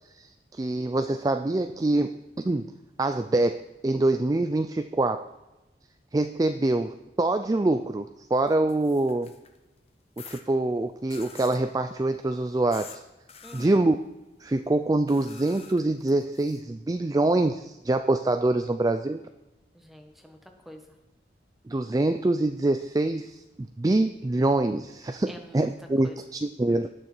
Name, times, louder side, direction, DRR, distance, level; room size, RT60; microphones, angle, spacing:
voice 1, 0.1-2.7 3.0-5.3 6.1-9.3 10.2-13.0 13.5-14.0 14.4-19.2 21.7-26.9, right 2 dB, 20° right, 8 dB, 0.3 m, -25 dB
sound 1, 8.5-9.6 10.2-10.4 11.1-11.6 12.7-13.0 13.3-13.7 15.1-16.6, left 6 dB, 35° left, 1.0 m, -47 dB
voice 2, 13.4-13.8 19.7-20.8 25.3-25.7 26.0-26.2, equal, ahead, 3 dB, 1.3 m, -47 dB
19.0 x 6.6 x 4.5 m, 1.0 s
head